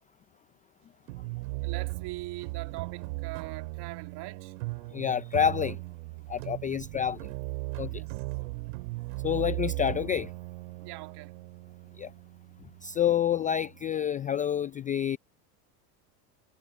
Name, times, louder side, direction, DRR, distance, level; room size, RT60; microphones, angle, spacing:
sound 1, 1.1-13.9, right 24 dB, 70° right, 3.1 m, -38 dB
voice 1, 1.6-4.5 7.9-8.2 10.8-11.3, right 19 dB, 50° right, 2.2 m, -41 dB
voice 2, 4.9-5.8 6.3-7.3 7.8-8.0 9.2-10.3 12.0-12.1 12.8-15.2, left 9 dB, 20° left, 0.3 m, -28 dB
supercardioid pair, 105°, 50 cm